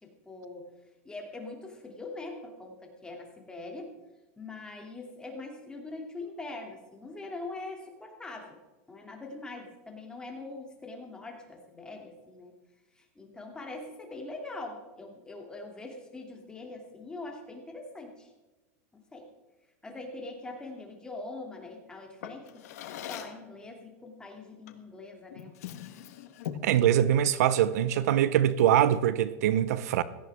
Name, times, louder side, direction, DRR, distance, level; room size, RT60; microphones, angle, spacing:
voice 1, 0.0-0.7 1.0-4.0 4.4-8.6 8.9-12.5 12.9-18.3 18.9-19.3 19.8-25.5, left 2 dB, 10° left, 2.6 m, -43 dB
Drawer open or close, 22.2-23.5 24.7-24.9 25.3-26.8, left 10 dB, 80° left, 1.3 m, -41 dB
voice 2, 26.6-30.0, right 10 dB, 80° right, 0.7 m, -23 dB
17.0 x 14.0 x 3.6 m
supercardioid pair, 135°, 8 cm